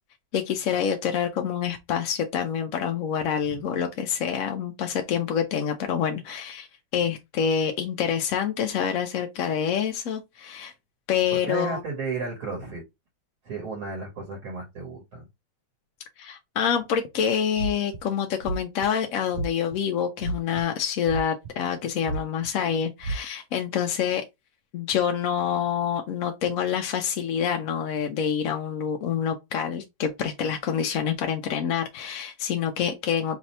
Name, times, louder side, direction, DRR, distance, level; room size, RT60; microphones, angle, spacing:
voice 1, 0.3-6.7 6.9-10.7 11.1-11.8 16.2-24.2 24.7-33.4, left 8 dB, 65° left, 0.9 m, -27 dB
voice 2, 11.3-12.8 13.4-15.3, right 4 dB, 55° right, 1.7 m, -33 dB
sound 1, 17.5-18.0 18.4-18.9 19.3-19.8 20.2-20.6 21.1-21.7 22.0-22.5 23.0-23.2, right 3 dB, 80° right, 1.2 m, -30 dB
3.2 x 2.6 x 4.1 m
omnidirectional pair, 1.8 m